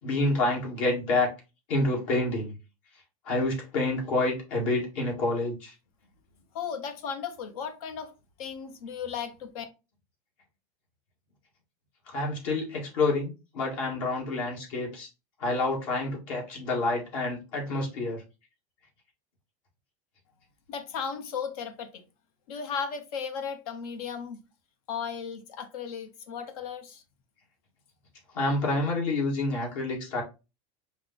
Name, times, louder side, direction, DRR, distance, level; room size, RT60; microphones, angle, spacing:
voice 1, 0.0-1.3 1.7-2.5 3.3-5.7 12.1-15.1 15.4-18.2 28.3-30.2, left 2 dB, 65° left, 2.0 m, -28 dB
voice 2, 6.5-8.1 8.4-9.6 20.7-22.0 22.5-24.4 24.9-27.0, left 6 dB, 90° left, 1.1 m, -35 dB
5.1 x 2.3 x 3.9 m
supercardioid pair, 180°, 18 cm